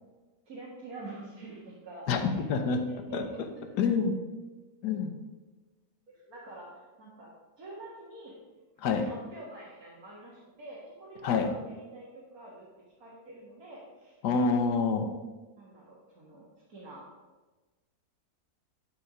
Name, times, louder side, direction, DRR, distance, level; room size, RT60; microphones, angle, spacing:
voice 1, 0.5-2.6 3.1-3.3 6.1-7.3 7.6-8.3 8.9-12.7 13.0-14.4 14.9-15.0 15.6-17.0, right 2 dB, 60° right, -6 dB, 2.2 m, -47 dB
voice 2, 2.1-2.8 3.1-3.5 3.8-4.2 4.8-5.1 8.8-9.1 11.2-11.5 14.2-15.1, left 5 dB, 85° left, 6 dB, 1.5 m, -27 dB
11.5 x 4.9 x 4.9 m, 1.2 s
omnidirectional pair, 1.7 m